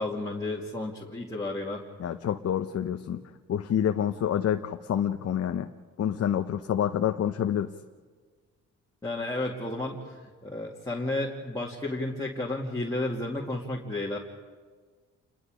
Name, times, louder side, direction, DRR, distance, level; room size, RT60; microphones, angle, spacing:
voice 1, 0.0-1.8 9.0-14.2, left 2 dB, 10° left, -4 dB, 2.5 m, -32 dB
voice 2, 2.0-3.2 3.5-5.7 6.0-7.7, left 9 dB, 55° left, 6 dB, 0.9 m, -27 dB
28.5 x 21.5 x 5.1 m, 1.5 s
cardioid pair, 90°, 30 cm